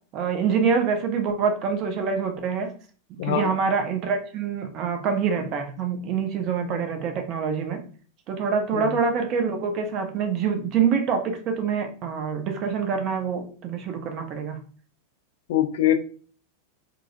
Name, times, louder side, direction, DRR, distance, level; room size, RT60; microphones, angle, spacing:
voice 1, 0.1-2.7 3.2-7.8 8.3-14.6, right 6 dB, 35° right, 5 dB, 0.5 m, -25 dB
voice 2, 3.2-3.5 8.7-9.0 15.5-15.9, left 12 dB, 55° left, 9 dB, 0.3 m, -23 dB
2.6 x 2.0 x 2.6 m, 0.42 s
figure-of-eight pair, 90°, 0 cm